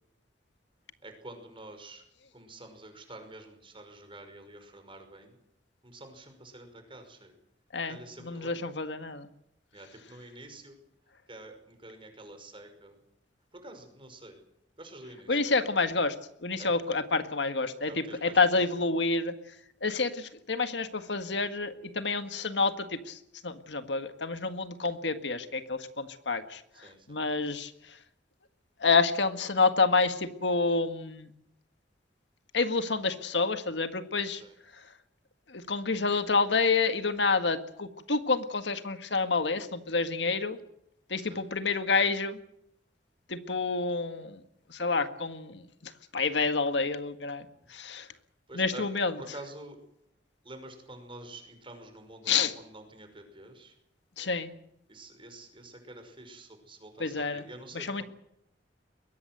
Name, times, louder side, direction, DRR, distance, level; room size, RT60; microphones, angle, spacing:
voice 1, 1.0-2.0 2.3-5.4 5.8-7.3 7.9-8.7 9.7-10.8 11.3-13.0 13.5-14.4 14.8-15.4 16.6-16.8 17.9-18.4 18.7-18.8 26.8-27.2 34.3-34.5 41.2-41.4 47.5-47.7 48.5-48.9 49.2-49.8 50.4-53.7 54.9-58.0, right 2 dB, 30° right, 6 dB, 5.5 m, -48 dB
voice 2, 7.7-9.3 15.3-16.2 16.4-19.3 19.8-23.2 23.4-26.6 27.1-27.7 28.8-31.3 32.5-34.4 35.5-40.6 41.1-42.4 43.3-44.4 44.7-47.4 47.7-48.1 48.5-49.1 52.3-52.5 54.2-54.5 57.0-57.4 57.7-58.0, left 4 dB, 70° left, 9 dB, 1.8 m, -28 dB
22.0 x 17.5 x 7.9 m, 0.77 s
head